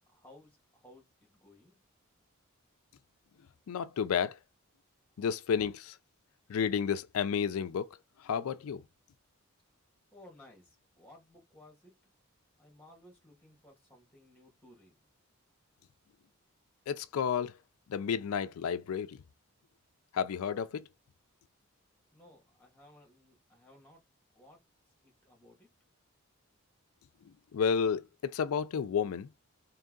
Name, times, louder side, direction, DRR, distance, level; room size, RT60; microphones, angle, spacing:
voice 1, 0.1-1.8 10.1-11.9 12.6-15.0 22.1-24.0 24.3-24.6 25.0-25.7, left 1 dB, 5° left, 1.9 m, -58 dB
voice 2, 3.7-4.4 5.2-6.0 6.5-8.8 16.9-17.6 17.9-19.2 20.1-20.8 27.5-29.3, left 7 dB, 80° left, 0.4 m, -31 dB
3.6 x 3.1 x 3.7 m
head